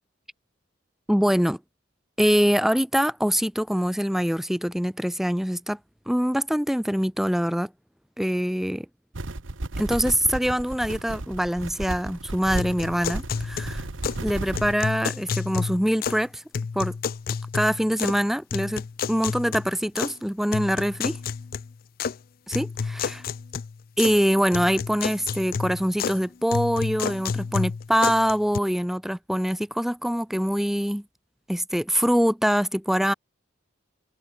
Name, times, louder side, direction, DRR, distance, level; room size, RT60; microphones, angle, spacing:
voice 1, 1.1-1.6 2.2-5.8 6.1-7.7 8.2-8.9 9.8-13.9 14.2-16.4 16.7-16.9 17.5-18.8 19.1-21.2 22.5-23.2 24.0-31.0 31.5-33.1, equal, ahead, 0.5 m, -24 dB
sound 1, 9.1-14.7, right 2 dB, 70° right, 1.3 m, -34 dB
sound 2, 12.6-14.3 14.5-16.3 16.5-18.2 18.5-20.1 20.5-22.2 22.5-24.2 24.5-26.2 26.5-28.6, left 5 dB, 45° left, 0.4 m, -30 dB
head